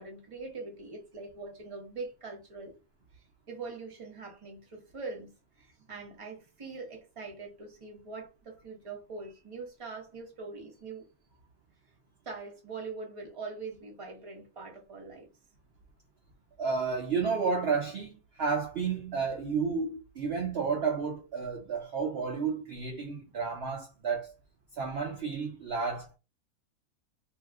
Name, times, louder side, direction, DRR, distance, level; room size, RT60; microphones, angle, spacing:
voice 1, 0.0-2.8 3.1-5.3 5.6-11.0 12.2-15.3, right 4 dB, 25° right, 0.9 m, -43 dB
voice 2, 16.6-24.3 24.7-26.2, right 5 dB, 55° right, 0.8 m, -31 dB
2.7 x 2.3 x 3.4 m
omnidirectional pair, 1.5 m